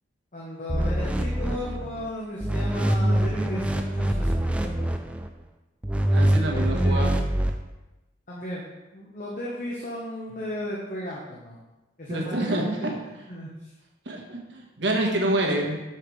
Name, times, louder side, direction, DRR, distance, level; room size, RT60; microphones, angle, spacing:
voice 1, 0.3-4.9 6.5-7.3 8.3-8.6 8.9-11.6 12.0-12.9 13.3-13.5, left 1 dB, 45° left, -5 dB, 1.1 m, -35 dB
sound 1, 0.7-2.1 2.4-5.3 5.8-7.5, right 1 dB, 5° right, 0.4 m, -24 dB
voice 2, 6.1-7.2 12.1-13.0 14.0-15.8, right 1 dB, 75° right, 1 dB, 1.3 m, -27 dB
8.1 x 5.7 x 3.3 m, 1.0 s
head